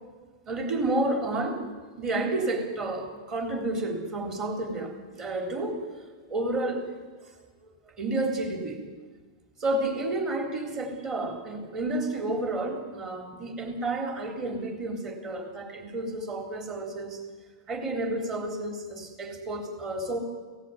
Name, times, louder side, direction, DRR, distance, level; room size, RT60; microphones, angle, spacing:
voice 1, 0.5-1.6 2.0-5.8 6.3-6.9 8.0-8.8 9.6-17.2 17.7-20.2, right 2 dB, 20° right, 3 dB, 3.7 m, -30 dB
25.0 x 17.5 x 9.5 m, 1.4 s
supercardioid pair, 165°, 3 cm